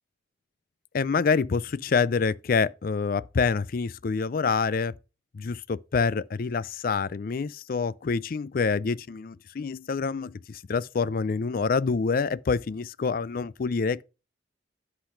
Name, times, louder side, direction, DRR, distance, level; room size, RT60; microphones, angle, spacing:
voice 1, 0.9-4.9 5.3-14.0, left 5 dB, 50° left, 0.4 m, -27 dB
10.0 x 4.0 x 5.6 m
head